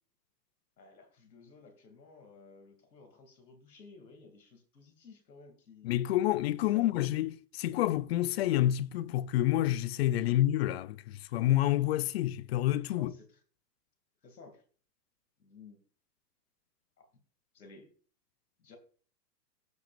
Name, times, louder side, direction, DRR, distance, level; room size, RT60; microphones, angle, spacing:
voice 1, 0.8-6.0 6.7-6.9 10.2-10.3 12.9-13.4 14.2-14.6 15.4-15.8 17.0-17.1 17.5-17.9 18.6-18.8, left 4 dB, 90° left, 2.8 m, -55 dB
voice 2, 5.8-13.1, left 14 dB, 45° left, 0.4 m, -28 dB
15.5 x 6.0 x 2.5 m
hypercardioid pair, 125°, 49 cm